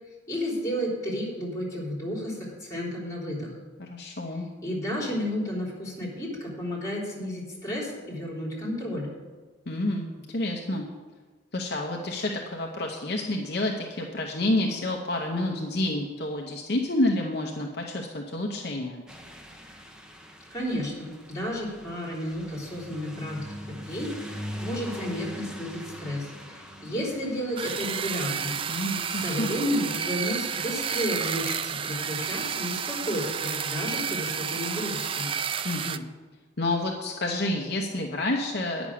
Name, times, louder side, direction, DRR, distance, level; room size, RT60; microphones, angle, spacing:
voice 1, 0.3-3.5 4.6-9.1 20.5-28.6 29.1-35.3, equal, 15° left, -4 dB, 3.8 m, -32 dB
voice 2, 3.8-4.5 9.7-10.9 11.5-19.0 28.7-29.5 35.6-36.0 36.6-38.9, left 1 dB, 55° left, 0 dB, 0.9 m, -29 dB
sound 1, 19.1-33.2, equal, 5° right, 0.8 m, -44 dB
sound 2, 27.6-36.0, right 7 dB, 30° right, 0.3 m, -31 dB
9.7 x 6.2 x 8.5 m, 1.3 s
head